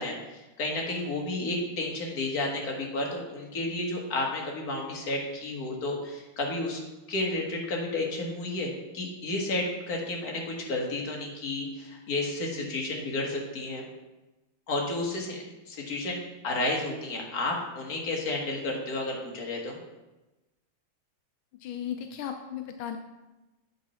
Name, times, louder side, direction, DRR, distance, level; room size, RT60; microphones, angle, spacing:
voice 1, 0.0-6.8 7.1-13.9 14.7-19.8, left 2 dB, 50° left, -1 dB, 1.9 m, -32 dB
voice 2, 21.6-23.0, left 9 dB, 85° left, 6 dB, 1.4 m, -35 dB
8.7 x 4.1 x 5.6 m, 1.1 s
omnidirectional pair, 2.2 m